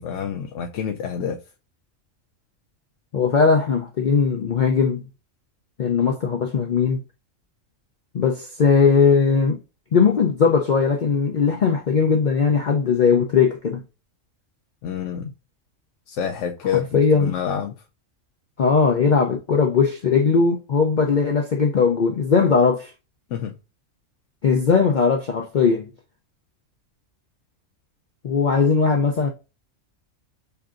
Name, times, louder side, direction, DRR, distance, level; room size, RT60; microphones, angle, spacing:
voice 1, 0.0-1.4 14.8-15.3 16.1-17.7 23.3-23.6, left 8 dB, 70° left, 0.9 m, -27 dB
voice 2, 3.1-5.0 5.8-7.0 8.1-9.6 9.9-13.8 16.9-17.3 18.6-22.9 24.4-25.9 28.2-29.3, left 5 dB, 55° left, 0.5 m, -19 dB
6.8 x 2.6 x 2.4 m
omnidirectional pair, 1.4 m